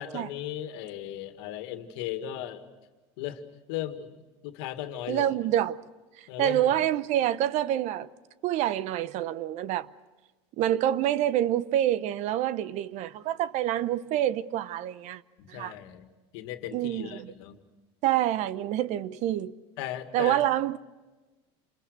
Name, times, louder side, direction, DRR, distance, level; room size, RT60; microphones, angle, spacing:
voice 1, 0.0-2.6 3.2-3.4 3.7-4.1 4.4-5.3 6.3-6.9 15.4-16.1 16.3-17.6 19.8-20.4, left 11 dB, 75° left, 2.0 m, -37 dB
voice 2, 5.1-5.8 6.4-8.1 8.4-9.9 10.6-15.2 15.5-15.7 16.7-17.3 18.0-19.5 20.1-20.8, right 12 dB, 55° right, 0.8 m, -27 dB
28.5 x 21.0 x 6.7 m
supercardioid pair, 115°, 14 cm